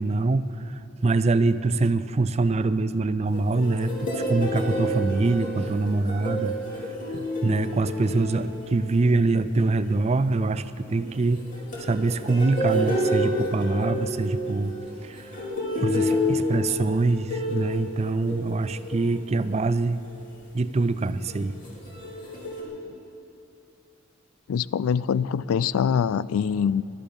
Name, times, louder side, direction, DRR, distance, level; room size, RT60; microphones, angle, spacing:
voice 1, 0.0-6.5 7.1-11.4 11.8-14.7 15.0-15.3 15.8-20.0 20.5-21.6, right 3 dB, 30° right, 13 dB, 0.4 m, -24 dB
sound 1, 3.3-9.1 11.0-19.2 19.9-20.1 21.3-22.6, left 1 dB, 40° left, 3.0 m, -29 dB
voice 2, 24.5-26.8, left 7 dB, 80° left, 19 dB, 0.3 m, -24 dB
19.0 x 11.5 x 5.2 m, 2.7 s
head